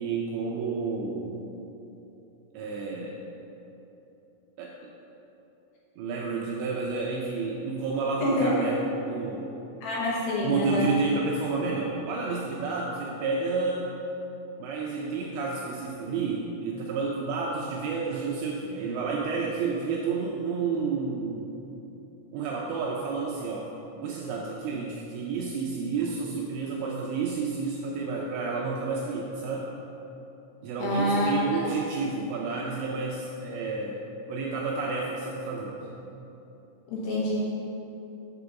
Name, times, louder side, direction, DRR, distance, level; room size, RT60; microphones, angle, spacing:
voice 1, 0.0-1.4 2.5-3.2 4.6-4.7 6.0-9.5 10.4-14.0 14.6-21.5 22.3-23.8 24.0-29.7 30.6-34.0 34.3-35.9, right 4 dB, 80° right, -2 dB, 2.6 m, -30 dB
voice 2, 8.2-8.5 9.8-10.9 30.8-31.3 31.6-31.7 36.9-37.4, left 1 dB, 70° left, -5 dB, 2.8 m, -27 dB
7.9 x 4.9 x 6.9 m, 3.0 s
omnidirectional pair, 5.8 m